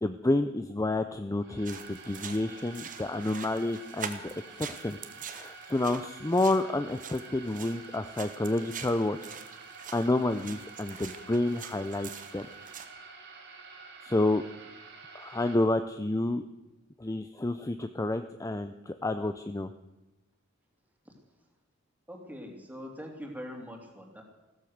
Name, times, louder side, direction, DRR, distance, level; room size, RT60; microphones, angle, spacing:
voice 1, 0.0-5.0 5.3-9.2 9.9-12.5 14.0-14.4 15.1-16.4 17.0-19.7, left 2 dB, 15° left, 10 dB, 0.5 m, -29 dB
sound 1, 1.4-15.5, right 4 dB, 55° right, 2.9 m, -49 dB
sound 2, 1.6-12.9, right 7 dB, 40° right, 1.3 m, -45 dB
voice 2, 22.1-24.2, equal, 10° right, 1 dB, 3.0 m, -43 dB
15.5 x 13.5 x 6.5 m, 1.0 s
head